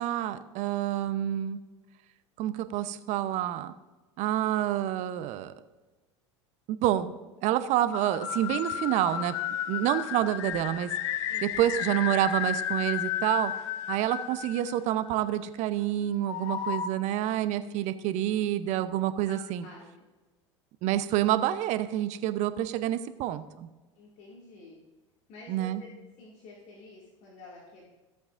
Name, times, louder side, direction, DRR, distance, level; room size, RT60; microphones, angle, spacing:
voice 1, 0.0-1.6 2.4-3.7 4.2-5.5 6.7-7.1 7.4-9.3 9.7-10.9 11.4-13.5 13.9-19.7 20.8-23.7 25.5-25.8, right 12 dB, 50° right, 13 dB, 0.7 m, -28 dB
sound 1, 7.9-15.1 16.3-16.9, left 10 dB, 70° left, 0.7 m, -33 dB
voice 2, 19.3-19.9 24.0-24.8 25.3-25.9 26.2-27.9, left 2 dB, 50° left, -4 dB, 2.2 m, -49 dB
14.5 x 8.0 x 2.5 m, 1.2 s
hypercardioid pair, 80°, 16 cm